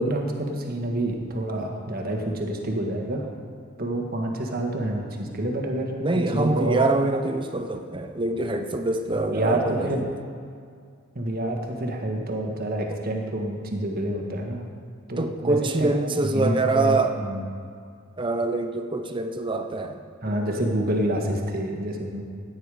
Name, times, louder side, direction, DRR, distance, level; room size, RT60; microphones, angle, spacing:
voice 1, 0.0-3.3 3.8-6.8 9.3-10.1 11.1-14.7 15.1-17.4 20.2-22.2, right 1 dB, 45° right, 2 dB, 1.6 m, -28 dB
voice 2, 6.0-10.1 12.9-13.0 15.2-17.2 18.2-20.0, right 2 dB, 25° right, 7 dB, 0.6 m, -25 dB
15.5 x 9.3 x 4.9 m, 2.3 s
head